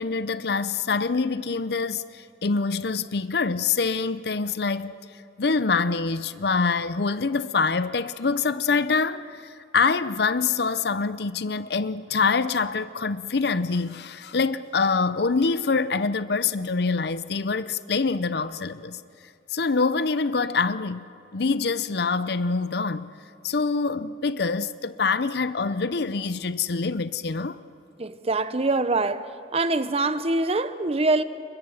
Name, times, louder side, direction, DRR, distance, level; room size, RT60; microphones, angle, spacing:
voice 1, 0.0-5.0 5.4-19.0 19.5-23.1 23.4-27.6, left 4 dB, 65° left, 0.7 m, -25 dB
voice 2, 28.0-29.3 29.5-31.2, right 2 dB, 35° right, 0.8 m, -24 dB
29.0 x 23.0 x 7.2 m
head